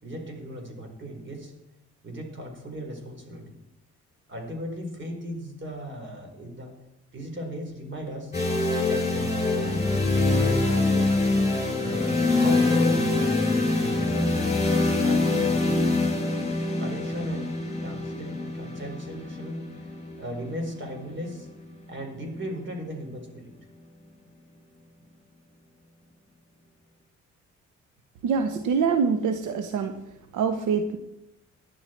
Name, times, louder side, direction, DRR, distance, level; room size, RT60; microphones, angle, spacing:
voice 1, 0.0-1.5 2.0-3.6 4.3-6.8 7.1-8.4 8.9-11.2 11.8-13.2 13.6-15.8 16.8-17.5 17.8-19.9 20.2-21.5 21.9-23.5, equal, 40° right, 3 dB, 4.5 m, -37 dB
sound 1, 8.3-22.2, left 2 dB, 20° left, 7.1 m, -25 dB
voice 2, 28.2-29.9 30.3-31.0, right 6 dB, 80° right, 8 dB, 1.1 m, -25 dB
17.5 x 11.0 x 4.5 m, 0.88 s
cardioid pair, 90°, 30 cm